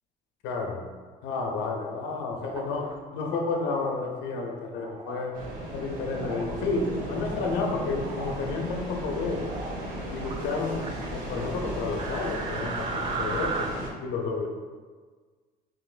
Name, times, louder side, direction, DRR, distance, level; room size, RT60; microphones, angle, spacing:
voice 1, 0.4-0.8 1.2-5.3 5.7-9.5 10.1-13.7 14.0-14.5, left 3 dB, 70° left, 1 dB, 0.5 m, -31 dB
sound 1, 2.4-2.9 3.6-4.0 4.7-5.2 6.1-6.5 7.0-7.6 7.9-8.4 9.3-9.8 10.2-11.1 12.0-13.7, right 4 dB, 25° right, 0.3 m, -36 dB
sound 2, 5.3-13.9, equal, 45° right, 0.9 m, -36 dB
3.6 x 2.9 x 2.3 m, 1.5 s
supercardioid pair, 95°, 19 cm